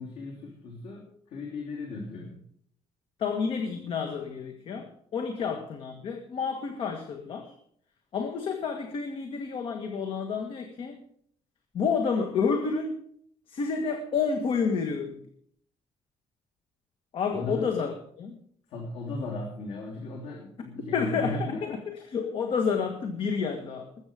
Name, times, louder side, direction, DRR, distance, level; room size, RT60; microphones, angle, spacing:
voice 1, 0.0-2.4 5.4-5.5 17.3-17.9 18.7-21.8, left 2 dB, 85° left, 3.2 m, -37 dB
voice 2, 3.2-7.5 8.1-11.0 11.7-13.0 13.5-15.2 17.1-18.4 20.9-23.9, left 5 dB, 55° left, 1.6 m, -30 dB
20.5 x 8.4 x 5.1 m
cardioid pair, 135°, 11 cm